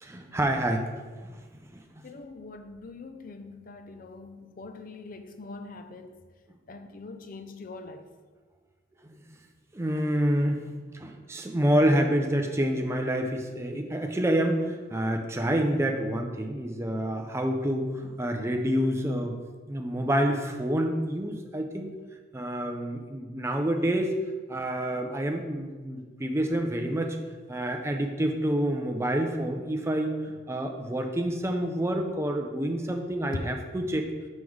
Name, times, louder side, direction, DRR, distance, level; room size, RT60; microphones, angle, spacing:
voice 1, 0.0-0.9 1.3-1.4 1.7-2.0 9.0-9.2 9.7-19.4 19.7-21.9 22.3-24.1 24.5-27.2 27.5-30.1 30.5-34.0, right 1 dB, 15° right, 0.4 m, -28 dB
voice 2, 2.0-6.2 6.7-8.1 30.2-30.3, left 3 dB, 45° left, 0.4 m, -43 dB
6.3 x 3.7 x 4.6 m
head